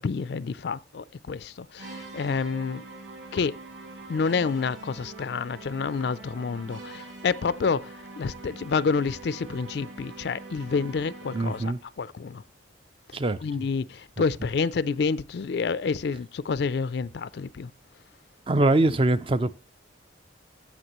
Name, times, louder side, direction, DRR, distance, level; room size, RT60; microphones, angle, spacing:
voice 1, 0.0-2.8 3.3-3.6 4.1-12.4 13.1-17.7, left 5 dB, 55° left, 0.4 m, -29 dB
sound 1, 1.8-11.9, right 3 dB, 75° right, 2.7 m, -44 dB
voice 2, 11.3-11.8 13.1-13.4 18.5-19.6, right 2 dB, 30° right, 0.4 m, -23 dB
15.5 x 5.9 x 3.0 m
head